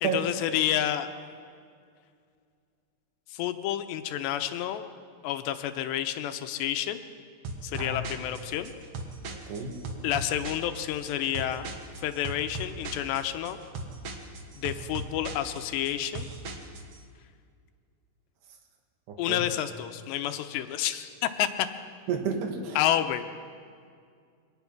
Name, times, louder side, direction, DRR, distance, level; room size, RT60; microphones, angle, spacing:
voice 1, 0.0-1.1 3.3-4.8 5.2-7.0 7.6-8.7 10.0-11.7 12.0-13.6 14.6-16.3 19.2-21.7 22.8-23.3, left 11 dB, 85° left, 9 dB, 3.0 m, -29 dB
sound 1, 7.4-17.0, right 2 dB, 60° right, 1.7 m, -39 dB
voice 2, 9.5-9.8 19.1-19.4 22.1-22.8, right 5 dB, 75° right, 4 dB, 3.7 m, -30 dB
24.0 x 18.0 x 6.0 m, 2.2 s
omnidirectional pair, 5.0 m